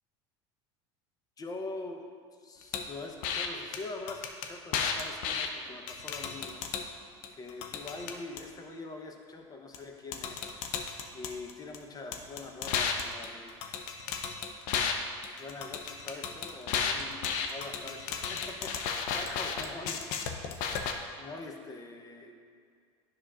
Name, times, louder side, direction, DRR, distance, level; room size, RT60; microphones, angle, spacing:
voice 1, 1.4-2.1 2.4-6.6 7.4-10.5 11.1-13.6 15.4-20.0 21.2-22.3, left 3 dB, 25° left, 3 dB, 0.9 m, -43 dB
sound 1, 2.7-2.9 3.2-3.5 3.7-3.8 4.1-5.5 5.9-6.9 7.2-8.4 9.7-9.8 10.1-11.8 12.1-14.9 15.2-20.9, left 6 dB, 70° left, 0.6 m, -33 dB
10.0 x 6.2 x 2.5 m, 2.2 s
supercardioid pair, 95°, 14 cm